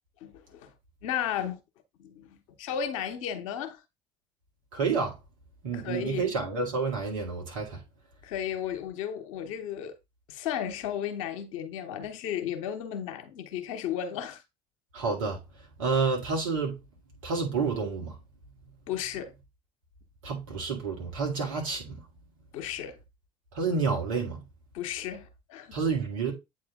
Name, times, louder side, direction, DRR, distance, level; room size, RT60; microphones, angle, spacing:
voice 1, 0.2-0.7 1.0-1.6 2.0-3.8 5.7-6.3 8.2-9.9 10.3-14.4 18.9-19.3 22.5-23.0 24.7-25.8, left 9 dB, 75° left, 1.0 m, -34 dB
voice 2, 4.7-5.2 5.6-7.8 14.9-15.4 15.8-16.8 17.2-18.1 20.2-22.0 23.5-24.4 25.7-26.3, right 4 dB, 80° right, 1.9 m, -29 dB
8.5 x 3.2 x 3.6 m
hypercardioid pair, 55°, 17 cm